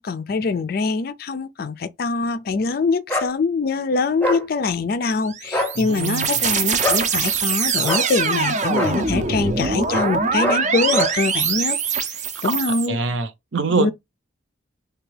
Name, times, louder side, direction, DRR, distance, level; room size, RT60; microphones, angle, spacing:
voice 1, 0.0-11.8 12.4-13.0 13.7-13.9, left 4 dB, 50° left, 0.4 m, -23 dB
sound 1, 3.1-3.3 4.2-4.4 5.4-5.7 6.8-7.1 7.8-8.1 8.7-8.9 9.9-10.1 10.4-10.6 10.9-11.1, left 1 dB, 10° left, 0.6 m, -23 dB
sound 2, 5.2-12.9, right 5 dB, 35° right, 0.5 m, -23 dB
voice 2, 5.8-6.5 12.9-13.9, right 4 dB, 75° right, 0.7 m, -24 dB
3.4 x 2.3 x 3.2 m
head